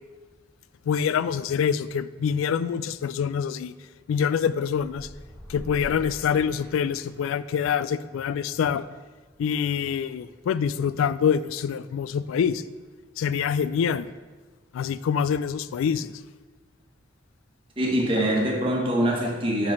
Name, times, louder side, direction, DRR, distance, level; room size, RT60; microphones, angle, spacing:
voice 1, 0.9-3.7 4.1-5.1 5.5-8.8 9.4-12.6 13.2-14.1 14.7-16.1, left 7 dB, 85° left, 16 dB, 0.3 m, -25 dB
sound 1, 4.8-7.3, equal, 10° left, 1.1 m, -43 dB
voice 2, 17.8-19.7, right 1 dB, 25° right, -2 dB, 1.3 m, -24 dB
5.5 x 4.6 x 6.1 m, 1.3 s
head